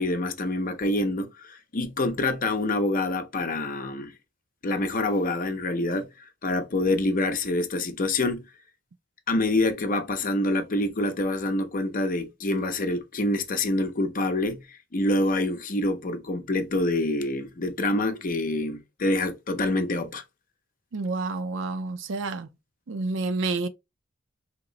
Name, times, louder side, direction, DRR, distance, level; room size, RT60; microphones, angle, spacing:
voice 1, 0.0-4.1 4.6-6.1 6.4-8.5 9.3-20.2, left 2 dB, 45° left, 0.6 m, -26 dB
voice 2, 20.9-22.5 22.9-23.7, right 3 dB, 70° right, 0.5 m, -29 dB
2.9 x 2.9 x 3.8 m
head